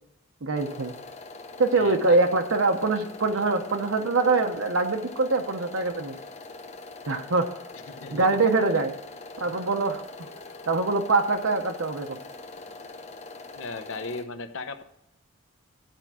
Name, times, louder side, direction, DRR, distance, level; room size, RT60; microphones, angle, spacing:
voice 1, 0.4-0.9 1.6-6.2 7.1-7.5 8.1-8.9 9.4-10.3 10.7-12.2, right 3 dB, 65° right, 5 dB, 0.7 m, -24 dB
sound 1, 0.5-14.2, left 3 dB, 30° left, 0.8 m, -43 dB
voice 2, 1.7-2.2 7.9-8.3 9.4-9.5 13.5-14.8, left 3 dB, 65° left, 9 dB, 0.8 m, -36 dB
11.5 x 4.5 x 6.0 m, 0.83 s
head